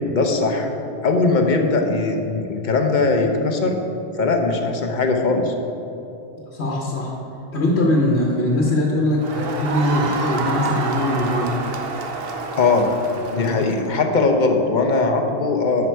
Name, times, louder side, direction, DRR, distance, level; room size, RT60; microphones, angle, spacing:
voice 1, 0.1-0.7 1.0-3.8 4.2-5.5 12.6-12.9 13.3-15.9, left 3 dB, 50° left, 4 dB, 0.9 m, -20 dB
voice 2, 6.5-7.1 7.5-11.6 13.3-13.7, left 1 dB, 75° left, -2 dB, 1.3 m, -21 dB
Crowd, 9.2-14.0, right 4 dB, 65° right, 1.0 m, -28 dB
10.5 x 6.0 x 4.6 m, 2.8 s
omnidirectional pair, 1.1 m